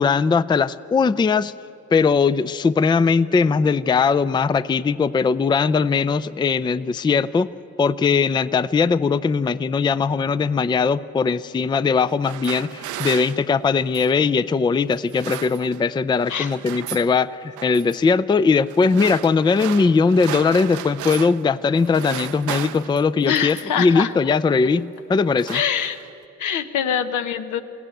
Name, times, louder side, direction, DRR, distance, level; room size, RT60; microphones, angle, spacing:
voice 1, 0.0-1.5 1.9-7.5 7.8-25.6, left 5 dB, 15° left, 16 dB, 0.4 m, -20 dB
sound 1, 12.0-14.2 14.9-16.0 16.2-17.1 17.6-18.0 18.7-21.5 21.8-23.9 24.6-24.9 25.2-26.2, right 13 dB, 75° right, 0.6 m, -35 dB
voice 2, 23.2-24.1 25.5-26.0 26.4-27.6, left 8 dB, 80° left, 9 dB, 1.1 m, -24 dB
22.0 x 16.0 x 9.1 m, 3.0 s
cardioid pair, 90°, 30 cm